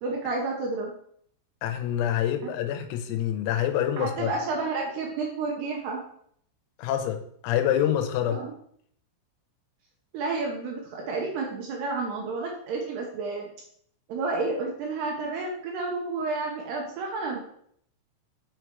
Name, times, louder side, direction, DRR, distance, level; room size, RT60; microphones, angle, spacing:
voice 1, 0.0-0.9 2.4-2.6 4.0-6.0 8.3-8.5 10.1-13.4 14.1-17.4, right 3 dB, 75° right, 0 dB, 2.6 m, -30 dB
voice 2, 1.6-4.3 6.8-8.4, left 10 dB, 90° left, 7 dB, 3.7 m, -26 dB
8.6 x 6.4 x 4.6 m, 0.65 s
omnidirectional pair, 5.9 m